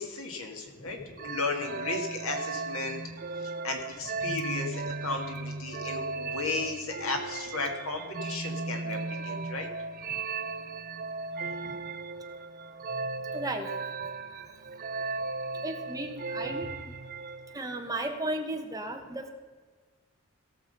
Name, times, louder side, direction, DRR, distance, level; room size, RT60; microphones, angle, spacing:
voice 1, 0.0-9.7 10.1-10.2, left 3 dB, 70° left, 3 dB, 2.0 m, -35 dB
sound 1, 1.2-17.6, right 3 dB, 45° right, 0.6 m, -36 dB
voice 2, 13.3-13.7 15.6-16.7 17.5-19.3, right 2 dB, 15° right, 3 dB, 1.3 m, -34 dB
17.0 x 6.4 x 5.4 m, 1.5 s
head